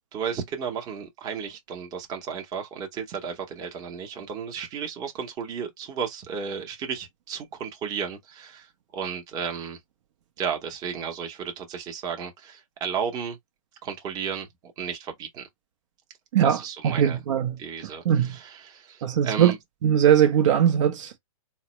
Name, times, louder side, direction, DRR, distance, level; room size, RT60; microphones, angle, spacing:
voice 1, 0.1-8.7 8.9-9.8 10.4-13.4 13.8-14.5 14.8-15.5 16.4-17.2 17.6-19.6, right 7 dB, 20° right, 0.8 m, -33 dB
voice 2, 16.3-17.6 18.0-18.4 19.0-19.5 19.8-21.2, right 9 dB, 55° right, 0.7 m, -20 dB
4.0 x 2.0 x 3.0 m
hypercardioid pair, 140°, 18 cm